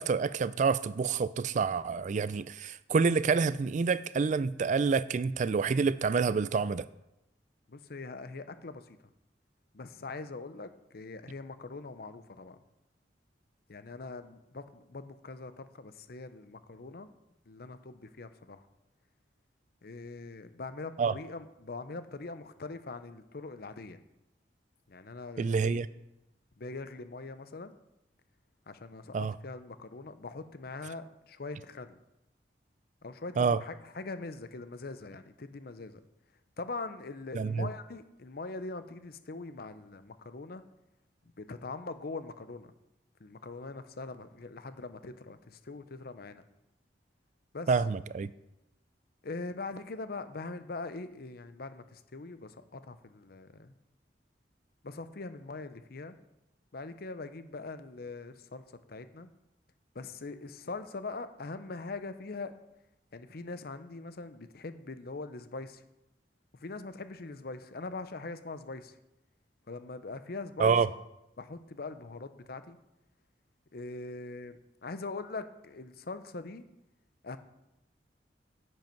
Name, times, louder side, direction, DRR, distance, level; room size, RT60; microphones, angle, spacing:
voice 1, 0.0-6.8 21.0-21.1 25.4-25.9 29.1-29.3 33.4-33.6 37.3-37.7 47.7-48.3 70.6-70.9, right 5 dB, 45° right, 16 dB, 0.3 m, -27 dB
voice 2, 7.7-8.8 9.7-12.6 13.7-17.1 17.5-18.6 19.8-24.0 24.9-25.8 26.6-27.7 28.7-32.0 33.0-36.0 36.6-40.6 41.4-42.7 43.2-46.4 47.5-47.8 49.2-53.7 54.8-56.2 56.7-58.6 58.9-59.3 59.9-62.5 63.1-65.8 66.6-69.0 69.7-70.8 71.4-72.8 73.7-76.6 77.2-77.4, left 3 dB, 60° left, 11 dB, 0.7 m, -42 dB
10.5 x 7.7 x 4.6 m, 0.90 s
head